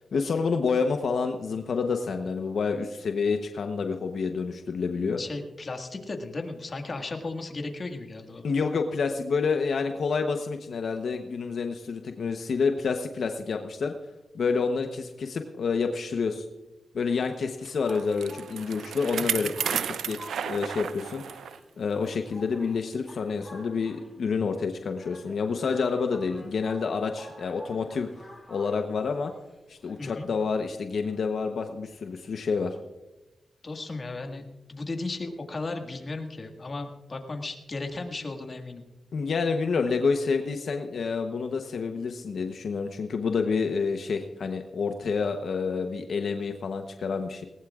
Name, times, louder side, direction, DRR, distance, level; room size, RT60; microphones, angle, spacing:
voice 1, 0.1-5.2 8.4-13.9 14.3-16.5 16.9-19.5 20.1-20.2 20.4-21.2 21.8-28.1 28.5-29.3 29.7-32.8 39.1-47.5, left 5 dB, 70° left, 5 dB, 0.9 m, -28 dB
voice 2, 5.2-8.5 19.2-19.5 30.0-30.3 33.6-38.8, left 3 dB, 40° left, 4 dB, 1.8 m, -35 dB
sound 1, 17.6-32.5, left 1 dB, ahead, 3.6 m, -51 dB
Bicycle, 17.6-21.6 22.0-22.1 22.9-23.0, right 8 dB, 90° right, 0.5 m, -33 dB
19.5 x 19.0 x 2.4 m, 1.1 s
cardioid pair, 80°, 0 cm